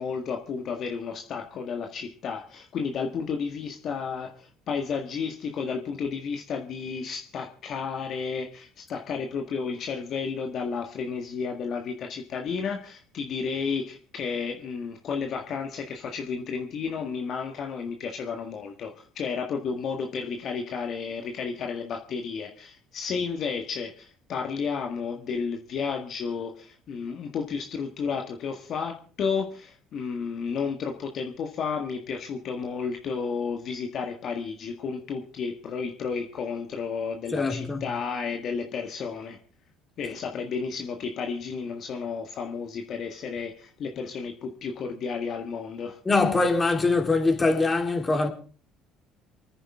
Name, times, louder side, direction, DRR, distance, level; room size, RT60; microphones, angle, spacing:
voice 1, 0.0-39.4 40.0-46.0, left 5 dB, 55° left, 1.7 m, -32 dB
voice 2, 37.3-37.8 46.1-48.3, left 3 dB, 25° left, 3.7 m, -23 dB
28.0 x 10.0 x 3.7 m
hypercardioid pair, 65°, 0 cm